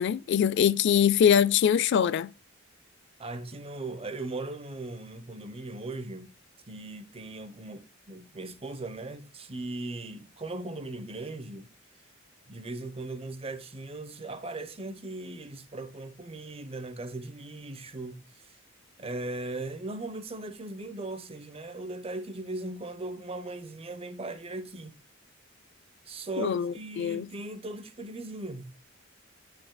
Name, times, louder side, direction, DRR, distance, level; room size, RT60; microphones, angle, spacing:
voice 1, 0.0-2.3 26.4-27.3, left 8 dB, 55° left, 0.3 m, -23 dB
voice 2, 3.2-6.3 6.7-11.7 12.5-18.6 19.0-25.0 26.1-28.9, right 2 dB, 30° right, 0.8 m, -38 dB
10.0 x 6.4 x 2.2 m
head